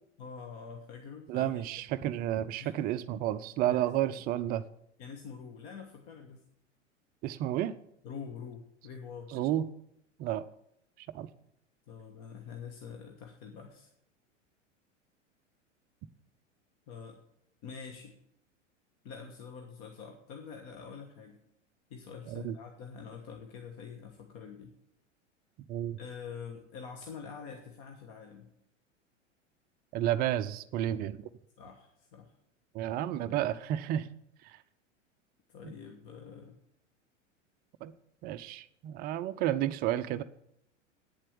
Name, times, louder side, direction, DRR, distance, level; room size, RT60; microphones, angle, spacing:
voice 1, 0.2-1.6 2.6-2.9 3.7-4.2 5.0-6.5 8.0-9.5 11.9-13.9 16.9-17.2 17.6-18.2 19.0-21.4 21.9-24.7 26.0-28.5 31.6-32.3 35.5-36.6, left 6 dB, 40° left, 3 dB, 1.4 m, -46 dB
voice 2, 1.3-4.6 7.2-7.8 9.3-9.7 10.2-10.4 11.1-11.3 22.3-22.5 25.7-26.0 29.9-31.2 32.7-34.1 34.5-34.6 35.6-35.7 37.8-37.9 38.2-40.2, right 12 dB, 25° right, 13 dB, 0.4 m, -31 dB
9.3 x 7.5 x 8.5 m, 0.75 s
figure-of-eight pair, 85°, 37 cm